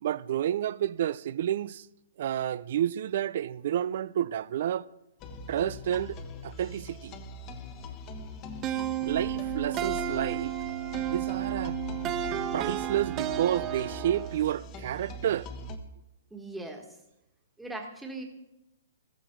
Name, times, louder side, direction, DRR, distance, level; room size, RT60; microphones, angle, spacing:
voice 1, 0.0-1.9 2.2-4.9 5.5-7.2 9.1-10.5 11.1-11.8 12.5-15.5, right 11 dB, 55° right, 0.4 m, -30 dB
sound 1, 5.2-15.8, left 3 dB, 30° left, 1.2 m, -42 dB
sound 2, 8.6-14.4, right 12 dB, 25° right, 0.7 m, -32 dB
voice 2, 16.3-16.8 17.6-18.2, right 2 dB, 5° right, 1.5 m, -39 dB
14.5 x 13.5 x 4.6 m
hypercardioid pair, 145°, 0 cm